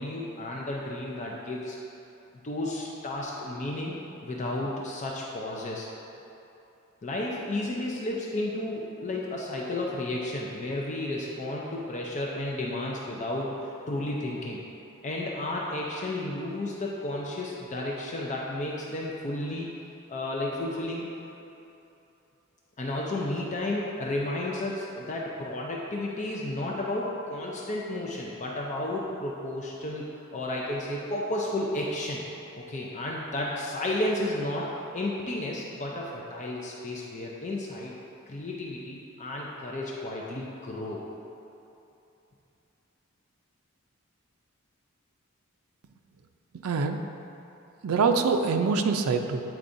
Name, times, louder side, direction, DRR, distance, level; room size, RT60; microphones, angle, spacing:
voice 1, 0.0-1.8 2.4-5.9 7.0-14.6 15.0-19.7 20.1-21.1 22.8-32.2 32.5-37.9 38.3-41.0, left 1 dB, 35° left, -3 dB, 0.5 m, -32 dB
voice 2, 46.5-47.0 47.8-49.4, right 4 dB, 90° right, 6 dB, 0.4 m, -25 dB
8.4 x 4.5 x 2.6 m, 2.9 s
head